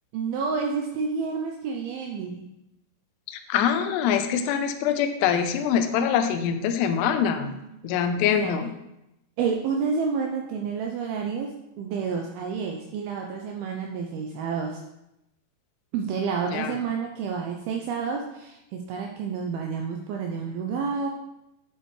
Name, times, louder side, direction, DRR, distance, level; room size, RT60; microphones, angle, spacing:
voice 1, 0.1-2.5 7.4-8.5 9.4-11.5 11.8-14.8 15.9-21.1, right 5 dB, 80° right, 1 dB, 2.3 m, -29 dB
voice 2, 3.3-7.5 7.8-8.7 16.5-16.7, left 8 dB, 80° left, 7 dB, 2.7 m, -24 dB
9.4 x 7.7 x 3.2 m, 0.88 s
omnidirectional pair, 5.0 m